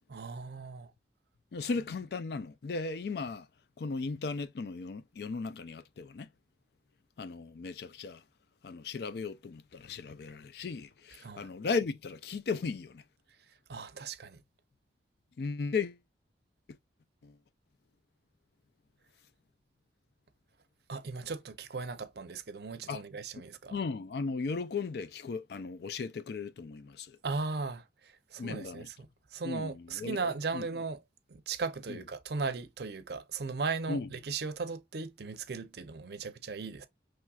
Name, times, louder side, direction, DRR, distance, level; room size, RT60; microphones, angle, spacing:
voice 1, 0.1-0.9 11.2-11.5 13.7-14.4 20.9-23.8 27.2-28.9 29.3-31.0 31.3-36.9, right 4 dB, 60° right, 0.6 m, -37 dB
voice 2, 1.5-3.5 3.8-6.3 7.2-8.2 8.6-13.0 15.4-16.0 17.2-17.4 22.9-23.0 23.7-27.2 28.4-28.9 29.4-30.2 30.5-30.7 31.9-32.0 33.9-34.1, left 4 dB, 55° left, 0.4 m, -36 dB
6.0 x 3.2 x 2.3 m
head